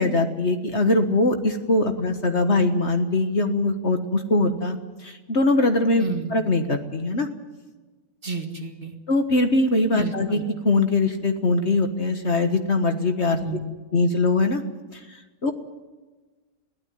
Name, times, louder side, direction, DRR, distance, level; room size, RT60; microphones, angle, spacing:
voice 1, 0.0-6.0 6.3-7.3 9.1-13.4 13.9-14.6 14.9-15.5, left 2 dB, 45° left, 7 dB, 1.6 m, -22 dB
voice 2, 6.0-6.3 8.2-8.9 9.9-10.4 13.4-13.6, right 4 dB, 35° right, 5 dB, 2.0 m, -30 dB
22.0 x 16.0 x 9.2 m, 1.3 s
omnidirectional pair, 1.7 m